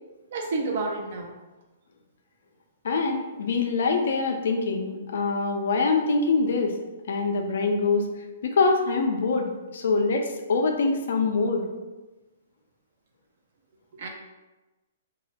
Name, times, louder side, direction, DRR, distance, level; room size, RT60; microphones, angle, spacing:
voice 1, 0.3-1.3 13.9-14.1, right 3 dB, 60° right, 1 dB, 0.5 m, -29 dB
voice 2, 2.8-6.7 7.1-8.1 8.4-11.7, left 4 dB, 70° left, 4 dB, 0.4 m, -24 dB
2.3 x 2.0 x 2.8 m, 1.1 s
hypercardioid pair, 140°, 0 cm